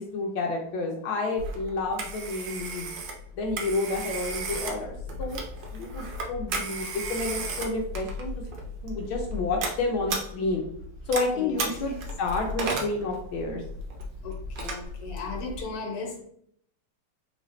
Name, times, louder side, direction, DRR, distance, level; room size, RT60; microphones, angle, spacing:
voice 1, 0.0-2.9 3.3-5.4 5.7-8.3 8.8-10.6 11.1-13.6, left 3 dB, 80° left, 1 dB, 1.4 m, -30 dB
Telephone, 1.4-15.6, right 1 dB, 65° right, 1.3 m, -35 dB
voice 2, 11.3-12.0 14.2-16.2, left 3 dB, 55° left, 1 dB, 1.3 m, -36 dB
4.1 x 3.2 x 3.1 m, 0.67 s
omnidirectional pair, 2.3 m